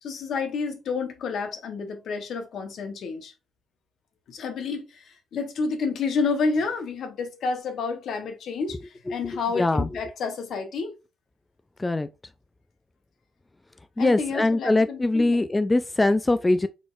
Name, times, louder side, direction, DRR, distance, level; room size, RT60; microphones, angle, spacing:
voice 1, 0.0-3.3 4.3-10.9 14.0-15.4, left 4 dB, 65° left, 1.1 m, -30 dB
voice 2, 9.5-9.9 11.8-12.1 14.0-16.7, left 2 dB, 15° left, 0.3 m, -22 dB
4.9 x 4.1 x 2.5 m
cardioid pair, 90°, 0 cm